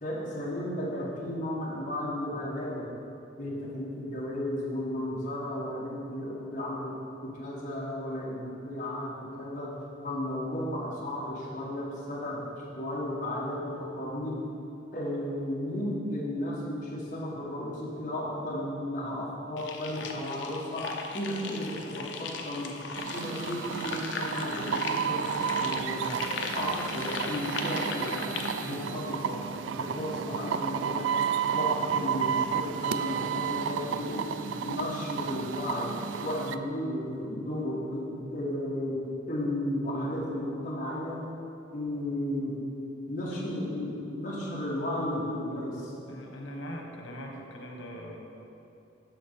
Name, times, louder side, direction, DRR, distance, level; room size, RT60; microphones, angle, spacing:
voice 1, 0.0-2.9 3.4-6.9 7.2-9.1 9.4-9.7 10.0-12.4 12.7-14.4 14.9-26.2 26.5-28.3 28.6-29.4 29.7-31.2 31.5-35.9 36.2-39.0 39.3-41.2 41.7-42.5 43.1-45.9, left 1 dB, 40° left, -6 dB, 1.6 m, -34 dB
sound 1, 19.6-28.7, left 4 dB, 70° left, 0.6 m, -38 dB
sound 2, 23.0-36.5, right 7 dB, 70° right, 0.3 m, -32 dB
voice 2, 46.1-48.2, equal, 85° left, 0 dB, 1.3 m, -41 dB
12.0 x 4.3 x 4.2 m, 2.8 s
head